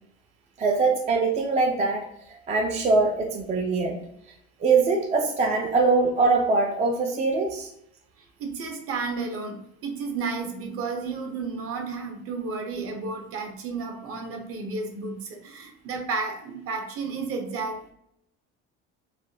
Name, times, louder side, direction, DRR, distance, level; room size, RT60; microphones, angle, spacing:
voice 1, 0.6-2.0 2.5-4.0 4.6-7.7, right 3 dB, 25° right, 1 dB, 0.3 m, -22 dB
voice 2, 8.4-17.9, right 4 dB, 50° right, 3 dB, 0.7 m, -32 dB
3.3 x 2.2 x 2.7 m, 0.75 s
cardioid pair, 125°, 29 cm